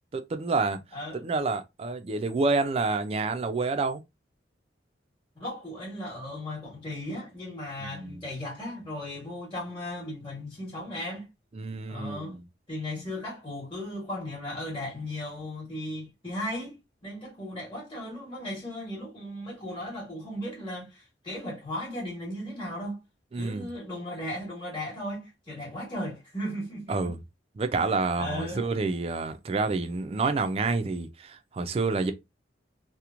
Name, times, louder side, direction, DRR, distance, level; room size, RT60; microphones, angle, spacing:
voice 1, 0.1-0.8 1.2-4.0 7.8-8.2 11.5-12.4 23.3-23.7 26.9-27.2 27.6-32.1, right 3 dB, 35° right, 0.3 m, -28 dB
voice 2, 0.9-1.2 5.4-11.3 11.9-12.4 12.7-23.0 23.3-27.1 27.8-28.7, left 1 dB, 25° left, 1.1 m, -36 dB
2.9 x 2.0 x 2.4 m
head